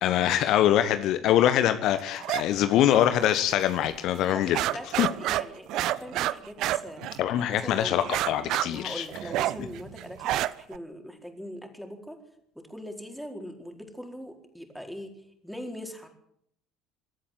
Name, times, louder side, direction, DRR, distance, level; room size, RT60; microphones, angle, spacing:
voice 1, 0.0-4.6 5.0-5.1 7.2-9.0, left 11 dB, 50° left, 10 dB, 1.2 m, -23 dB
sound 1, 2.2-2.4 2.7-3.5 3.8-3.9 4.3-7.5 8.0-10.8, right 14 dB, 50° right, 0.7 m, -29 dB
voice 2, 4.1-7.0 7.5-8.0 8.7-12.2 12.5-15.1 15.4-16.1, equal, ahead, 4 dB, 4.5 m, -41 dB
23.5 x 13.5 x 9.1 m, 0.69 s
figure-of-eight pair, 60°, 0 cm